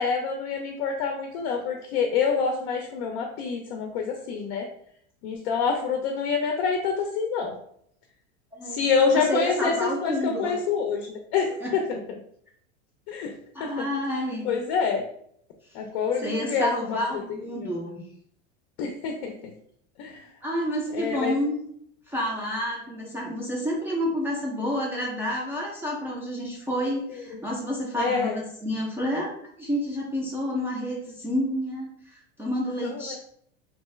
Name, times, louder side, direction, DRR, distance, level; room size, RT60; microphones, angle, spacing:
voice 1, 0.0-4.7 5.2-7.6 8.6-12.0 13.1-13.3 13.6-13.9 14.4-15.0 15.7-17.0 17.6-17.7 18.8-19.5 20.0-20.3 20.9-21.4 27.1-27.4 28.0-28.4 32.8-33.2, left 5 dB, 65° left, 3 dB, 0.5 m, -27 dB
voice 2, 8.5-10.6 11.6-11.7 13.5-14.5 16.2-18.0 20.4-21.6 22.1-29.3 29.6-33.2, equal, 5° right, -4 dB, 0.4 m, -29 dB
2.6 x 2.3 x 3.1 m, 0.68 s
supercardioid pair, 135°, 32 cm